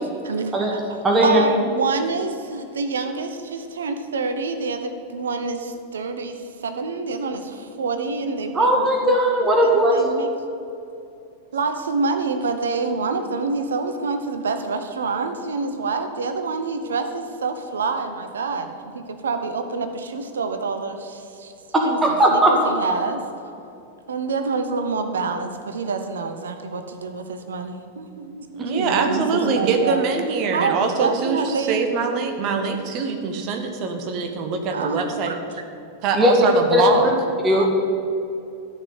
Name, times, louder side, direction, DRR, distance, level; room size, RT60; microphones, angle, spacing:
voice 1, 0.2-9.2 9.6-10.3 11.5-21.5 21.8-23.2 24.1-30.0 30.5-31.8 34.7-35.4 37.5-37.7, right 4 dB, 65° right, 7 dB, 1.0 m, -27 dB
voice 2, 1.0-1.4 8.5-10.0 22.0-22.5 28.6-28.7 36.1-36.3 36.7-36.8 37.4-37.6, right 1 dB, 15° right, 0 dB, 1.9 m, -17 dB
voice 3, 28.6-35.3 36.0-37.1, right 5 dB, 40° right, 5 dB, 1.6 m, -23 dB
12.5 x 6.7 x 8.2 m, 2.6 s
figure-of-eight pair, 90°, 0 cm